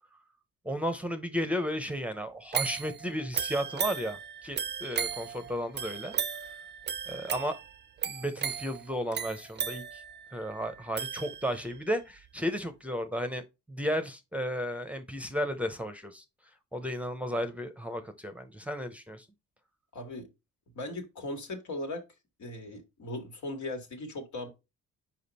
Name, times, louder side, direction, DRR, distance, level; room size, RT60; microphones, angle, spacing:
voice 1, 0.6-6.1 7.1-7.6 8.1-10.0 10.3-16.2 16.7-19.3, equal, 5° right, 0.8 m, -34 dB
sound 1, 2.5-11.8 12.2-12.3, right 8 dB, 35° right, 0.5 m, -36 dB
voice 2, 19.9-20.3 20.7-22.0 22.4-24.5, left 1 dB, 70° left, 2.0 m, -38 dB
5.0 x 5.0 x 4.1 m
cardioid pair, 90°, 30 cm